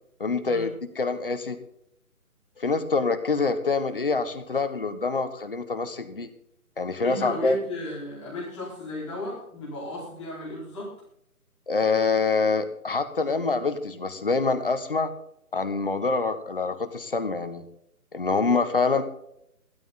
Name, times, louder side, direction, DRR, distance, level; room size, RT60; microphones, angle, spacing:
voice 1, 0.2-1.6 2.6-6.3 6.8-7.6 11.7-15.1 15.5-17.6 18.1-19.0, left 4 dB, 35° left, 9 dB, 1.4 m, -25 dB
voice 2, 7.0-10.9, left 1 dB, ahead, -16 dB, 1.5 m, -34 dB
15.5 x 13.0 x 4.2 m, 0.73 s
hypercardioid pair, 175°, 45 cm